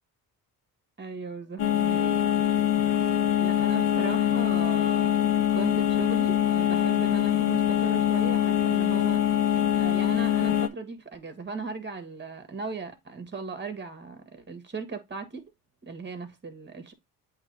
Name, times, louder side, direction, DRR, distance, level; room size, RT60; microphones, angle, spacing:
voice 1, 1.0-2.1 2.9-5.1 5.5-9.4 9.8-15.4 15.8-16.9, right 4 dB, 25° right, 1.7 m, -38 dB
sound 1, 1.6-10.7, left 11 dB, 55° left, 1.0 m, -24 dB
8.0 x 3.1 x 4.0 m
cardioid pair, 80°, 40 cm